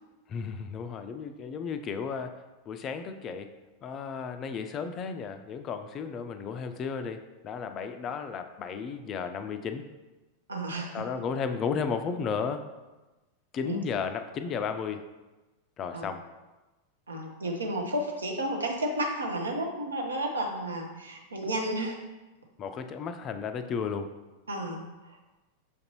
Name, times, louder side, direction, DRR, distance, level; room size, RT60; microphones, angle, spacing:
voice 1, 0.3-2.3 2.7-3.5 3.8-9.8 10.9-12.6 13.5-15.0 15.8-16.2 22.6-24.1, left 6 dB, 30° left, 8 dB, 0.3 m, -33 dB
voice 2, 10.5-11.0 13.6-13.8 15.9-16.1 17.1-22.0 24.5-25.2, right 1 dB, 75° right, 1 dB, 0.7 m, -32 dB
6.4 x 2.6 x 2.9 m, 1.1 s
figure-of-eight pair, 90°, 0 cm